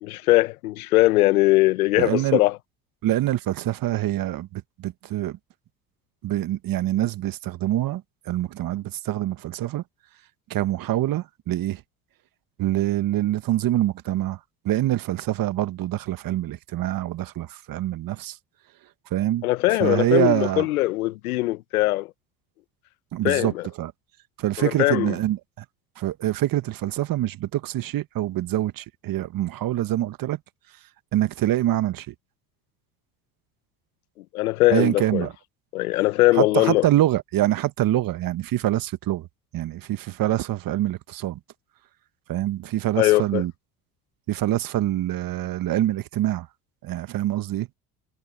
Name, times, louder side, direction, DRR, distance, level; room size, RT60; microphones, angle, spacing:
voice 1, 0.0-2.6 19.4-22.1 23.2-23.6 24.6-25.1 34.3-35.3 35.7-36.8 43.0-43.4, left 18 dB, 80° left, 1.1 m, -21 dB
voice 2, 2.0-2.4 3.0-5.4 6.2-9.8 10.5-11.8 12.6-14.4 14.6-18.4 19.1-19.5 19.8-20.7 23.1-23.5 23.8-23.9 24.4-25.4 26.0-30.4 31.1-32.1 34.7-35.3 36.4-39.3 39.5-41.4 42.3-43.5 44.3-46.5 46.8-47.7, right 14 dB, 50° right, 1.7 m, -25 dB
hypercardioid pair, 70°, 43 cm